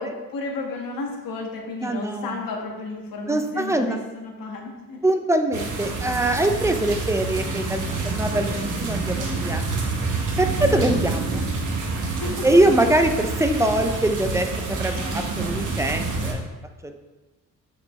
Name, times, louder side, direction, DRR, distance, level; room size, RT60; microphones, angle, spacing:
voice 1, 0.0-5.0 12.0-12.5 15.0-15.6, left 3 dB, 75° left, 0 dB, 1.4 m, -33 dB
voice 2, 1.8-2.4 3.3-4.0 5.0-9.7 10.4-11.4 12.4-16.4 16.8-16.9, right 1 dB, 10° right, 6 dB, 0.3 m, -23 dB
sound 1, 5.5-16.3, right 3 dB, 60° right, 1.2 m, -27 dB
6.7 x 5.3 x 3.1 m, 1.2 s
cardioid pair, 140°, 34 cm